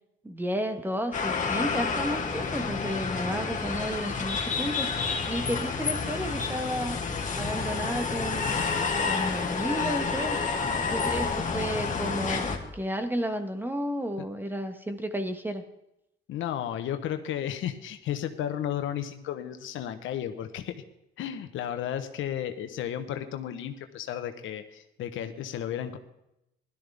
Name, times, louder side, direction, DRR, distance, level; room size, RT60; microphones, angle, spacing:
voice 1, 0.2-4.9 5.3-7.0 7.3-8.6 9.1-10.4 10.9-15.6, equal, 10° right, 8 dB, 1.5 m, -32 dB
sound 1, 1.1-12.6, left 5 dB, 40° left, 2.1 m, -29 dB
voice 2, 16.3-20.8 21.2-26.0, left 10 dB, 80° left, 8 dB, 1.1 m, -33 dB
16.5 x 12.5 x 3.5 m, 0.83 s
cardioid pair, 90°, 20 cm